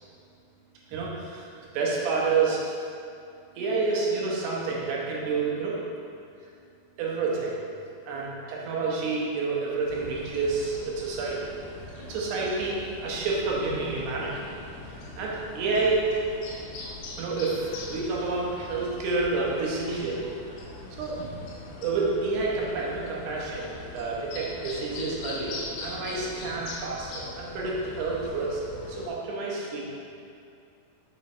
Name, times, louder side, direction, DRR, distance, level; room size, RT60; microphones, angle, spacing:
voice 1, 0.9-1.5 1.7-2.7 3.6-5.8 7.0-7.6 8.1-11.6 12.0-14.6 14.9-16.1 17.2-20.2 20.9-21.3 21.8-28.6 28.9-30.1, right 3 dB, 85° right, -4 dB, 3.1 m, -29 dB
sound 1, 9.9-29.1, left 2 dB, 80° left, 2.9 m, -41 dB
6.8 x 4.6 x 4.3 m, 2.5 s
omnidirectional pair, 4.7 m